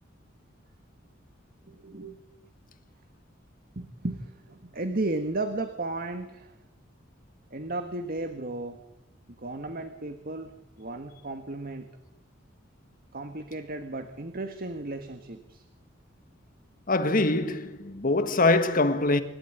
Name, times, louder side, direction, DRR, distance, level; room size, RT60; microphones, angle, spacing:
voice 1, 1.7-2.2 3.7-6.6 7.5-8.8 9.3-11.9 13.1-15.6, right 2 dB, 50° right, 1.6 m, -34 dB
voice 2, 16.9-19.2, left 2 dB, 45° left, 1.6 m, -23 dB
26.5 x 12.5 x 9.5 m
head